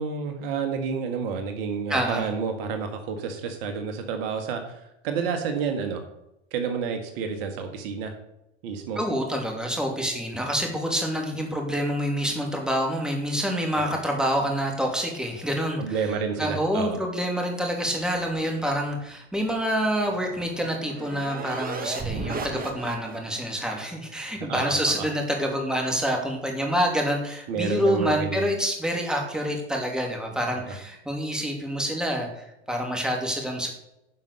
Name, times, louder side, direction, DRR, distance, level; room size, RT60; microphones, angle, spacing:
voice 1, 0.0-4.7 5.0-6.0 6.5-8.1 8.6-9.0 13.8-13.9 15.8-17.0 24.1-24.8 27.5-28.4 30.7-30.8, right 6 dB, 65° right, 5 dB, 1.8 m, -30 dB
voice 2, 1.9-2.3 9.0-16.1 16.4-33.7, equal, ahead, 1 dB, 2.8 m, -27 dB
sound 1, 19.8-23.4, right 4 dB, 25° right, 1.8 m, -35 dB
10.5 x 5.5 x 6.6 m, 0.85 s
hypercardioid pair, 90°, 32 cm